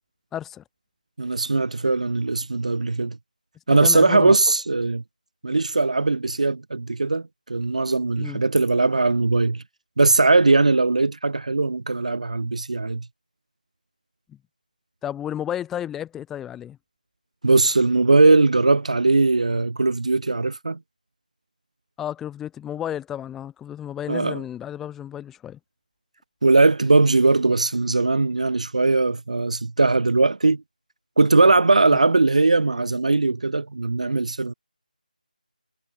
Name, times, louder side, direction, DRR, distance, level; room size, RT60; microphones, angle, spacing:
voice 1, 0.3-0.6 3.7-4.4 8.2-8.4 14.3-14.4 15.0-16.8 22.0-25.6 31.9-32.0, left 10 dB, 5° left, 3.7 m, -32 dB
voice 2, 1.2-3.2 3.7-5.0 5.4-7.2 7.5-9.6 10.0-13.0 17.4-20.8 24.1-24.4 26.4-30.6 31.2-34.5, right 3 dB, 50° right, 1.2 m, -19 dB
figure-of-eight pair, 160°, 5 cm